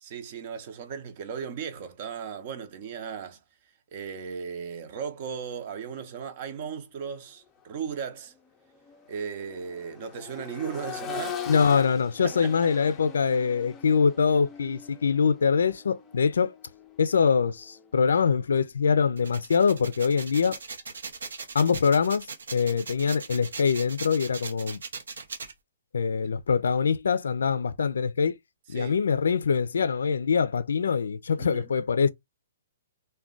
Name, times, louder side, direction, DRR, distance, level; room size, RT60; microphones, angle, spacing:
voice 1, 0.0-3.4 3.9-8.3 9.1-11.4 12.2-12.5 28.7-29.0 31.4-31.7, right 7 dB, 45° right, 0.6 m, -36 dB
Accelerating revving vroom, 7.5-7.6 8.1-18.0 19.7-19.8, left 8 dB, 20° left, 0.5 m, -42 dB
voice 2, 11.5-16.5 17.0-20.6 21.5-22.3 22.5-24.8 25.9-28.4 28.7-32.1, left 6 dB, 80° left, 0.3 m, -24 dB
sound 1, 19.2-25.5, right 5 dB, 85° right, 0.6 m, -39 dB
2.4 x 2.2 x 3.7 m
hypercardioid pair, 145°, 0 cm